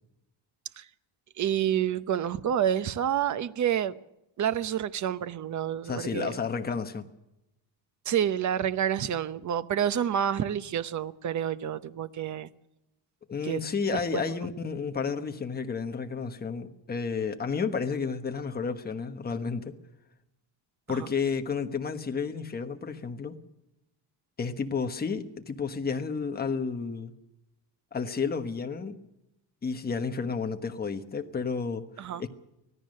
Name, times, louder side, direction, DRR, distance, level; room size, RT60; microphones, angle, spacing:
voice 1, 1.4-4.0 4.4-6.3 8.1-12.5 13.4-13.6 13.9-14.2 20.9-21.1 32.0-32.2, right 9 dB, 40° right, 0.8 m, -28 dB
voice 2, 5.8-7.1 13.3-19.8 20.9-23.4 24.4-27.1 27.9-29.0 29.6-31.9 32.2-32.3, left 5 dB, 20° left, 1.2 m, -31 dB
25.0 x 17.0 x 6.5 m
cardioid pair, 180°, 46 cm